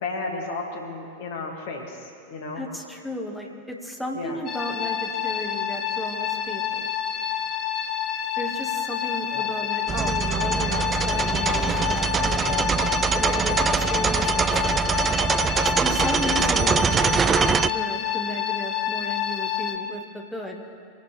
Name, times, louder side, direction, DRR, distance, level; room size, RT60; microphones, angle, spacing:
voice 1, 0.0-2.6 4.1-4.4 9.3-9.5, left 3 dB, 50° left, 1 dB, 2.4 m, -33 dB
voice 2, 2.5-6.9 8.4-10.8 11.1-12.7 13.2-14.8 15.7-20.6, left 1 dB, ahead, -1 dB, 1.9 m, -34 dB
sound 1, 4.5-19.8, left 10 dB, 30° left, 1.1 m, -28 dB
sound 2, 9.9-17.7, right 6 dB, 20° right, 0.3 m, -23 dB
24.0 x 11.5 x 3.4 m, 2.5 s
figure-of-eight pair, 90°, 0 cm